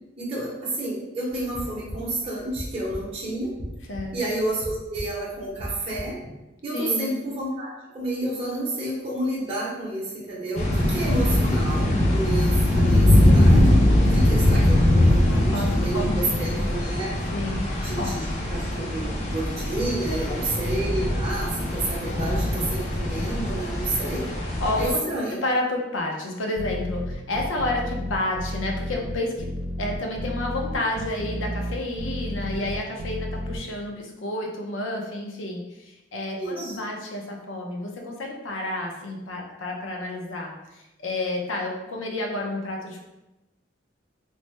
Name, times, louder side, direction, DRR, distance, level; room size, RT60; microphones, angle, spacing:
voice 1, 0.2-3.5 4.1-6.2 6.6-17.1 17.8-18.2 18.5-24.3 24.8-25.4 36.3-36.7, right 2 dB, 30° right, -7 dB, 0.6 m, -30 dB
sound 1, 1.3-6.3, equal, 65° left, 0.9 m, -39 dB
voice 2, 6.7-7.1 11.5-11.6 15.2-16.7 17.3-18.2 20.1-20.5 24.6-25.0 25.3-29.5 29.8-43.0, left 2 dB, 90° left, 0 dB, 0.6 m, -30 dB
sound 2, 10.5-24.9, left 1 dB, 35° left, 0.5 m, -21 dB
sound 3, 26.6-33.6, equal, 75° right, 0.4 m, -32 dB
3.1 x 2.0 x 3.1 m, 0.99 s
head